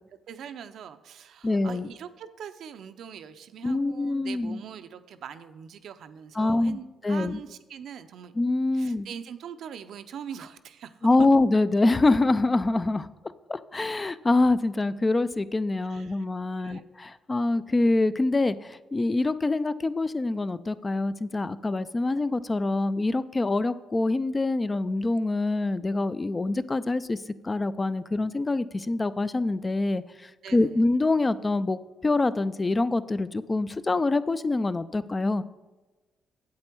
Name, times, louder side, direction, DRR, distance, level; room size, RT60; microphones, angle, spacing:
voice 1, 0.3-8.3 8.7-11.1 15.8-16.3 16.6-16.8 30.4-30.8, right 8 dB, 70° right, 10 dB, 0.6 m, -42 dB
voice 2, 1.4-1.9 3.6-4.6 6.4-7.4 8.4-9.1 11.0-13.1 13.5-35.4, left 2 dB, 25° left, 15 dB, 0.4 m, -25 dB
8.6 x 8.1 x 4.5 m, 1.2 s
cardioid pair, 90°, 0 cm